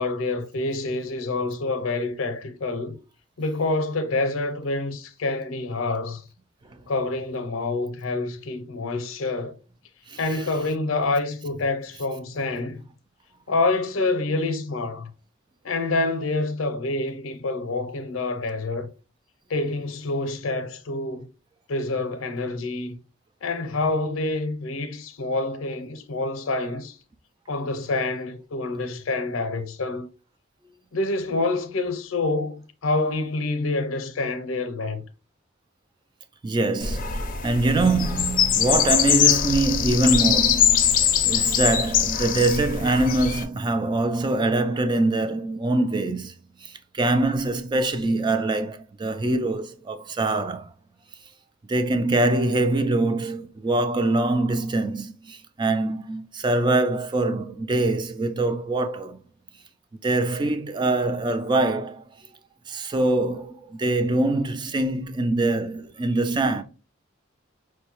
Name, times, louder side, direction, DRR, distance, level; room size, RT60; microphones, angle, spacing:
voice 1, 0.0-3.0 3.4-6.2 6.9-9.6 10.2-12.8 13.5-15.1 15.6-18.9 19.5-21.3 21.7-23.0 23.4-27.0 27.5-30.1 30.9-35.0, left 2 dB, 85° left, 0.6 m, -27 dB
voice 2, 36.4-46.3 46.6-50.7 51.7-59.2 60.0-62.0 62.7-66.6, right 2 dB, 25° right, 0.3 m, -24 dB
sound 1, 36.8-43.4, left 8 dB, 45° left, 0.5 m, -22 dB
4.6 x 2.2 x 2.8 m
head